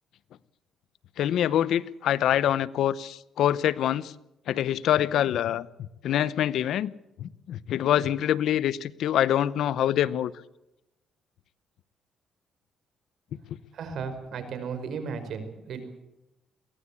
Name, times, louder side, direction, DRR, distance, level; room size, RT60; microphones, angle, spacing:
voice 1, 1.2-4.1 4.5-6.9 7.2-10.3, left 11 dB, 75° left, 0.8 m, -25 dB
voice 2, 13.7-16.0, right 5 dB, 70° right, 5.0 m, -35 dB
22.5 x 17.0 x 8.5 m
cardioid pair, 90°, 0 cm